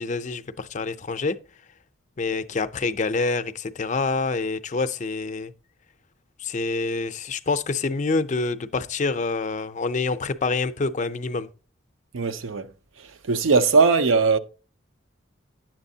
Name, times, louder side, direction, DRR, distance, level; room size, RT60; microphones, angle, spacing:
voice 1, 0.0-1.4 2.2-5.5 6.4-11.5, left 3 dB, 40° left, 0.5 m, -26 dB
voice 2, 12.1-12.7 13.0-14.4, right 4 dB, 85° right, 0.6 m, -20 dB
10.5 x 7.4 x 2.7 m
head